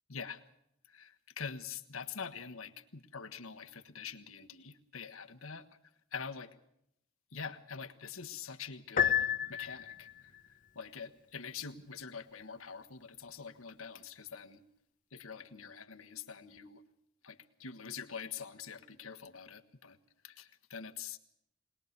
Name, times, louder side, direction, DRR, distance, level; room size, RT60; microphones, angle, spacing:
voice 1, 0.1-0.4 0.9-5.6 6.1-6.5 7.3-14.6 15.1-16.8 17.2-20.0 20.2-21.2, left 6 dB, 85° left, 8 dB, 1.4 m, -45 dB
Piano, 9.0-10.2, left 8 dB, 40° left, 0.9 m, -30 dB
21.0 x 20.5 x 6.7 m, 0.75 s
head